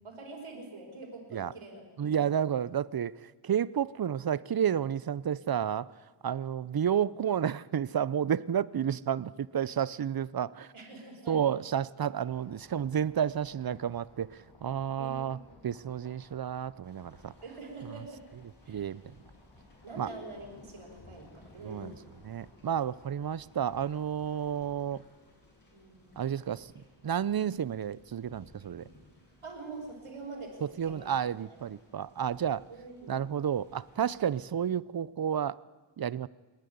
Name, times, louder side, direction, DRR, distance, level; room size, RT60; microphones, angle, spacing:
voice 1, 0.0-2.5 10.7-11.5 15.0-15.4 17.4-18.2 18.6-18.9 19.8-22.0 25.7-26.3 29.4-31.1 31.5-31.6 32.7-33.3, right 3 dB, 75° right, 1 dB, 5.1 m, -45 dB
voice 2, 2.0-5.9 6.2-10.7 11.3-15.4 15.6-17.3 18.7-19.1 20.0-20.1 21.6-21.9 22.2-25.0 26.2-26.7 27.0-28.8 30.6-32.6 33.1-35.6 36.0-36.3, right 9 dB, 45° right, 20 dB, 0.5 m, -31 dB
sound 1, 12.1-25.0, left 2 dB, 65° left, 5.4 m, -59 dB
sound 2, 16.8-34.4, left 1 dB, 45° left, 7.2 m, -61 dB
26.5 x 10.5 x 9.4 m, 1.4 s
wide cardioid pair, 85°, 50 cm